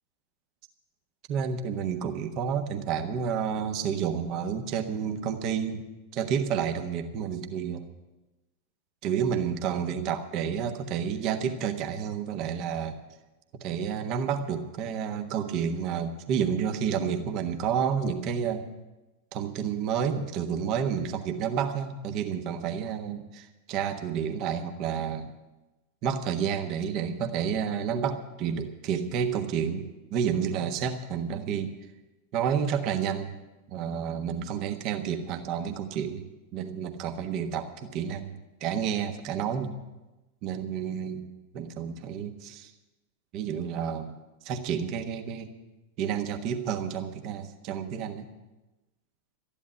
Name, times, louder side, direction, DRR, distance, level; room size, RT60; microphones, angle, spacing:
voice 1, 1.3-5.8 6.1-7.9 9.0-13.0 13.6-18.7 19.3-25.3 26.0-31.7 32.3-33.4 33.7-36.2 36.5-39.8 40.4-41.3 41.5-42.7 43.3-44.2 44.4-45.5 46.0-48.3, right 7 dB, 40° right, 7 dB, 1.4 m, -30 dB
13.5 x 11.0 x 8.8 m, 1.1 s
figure-of-eight pair, 90°, 0 cm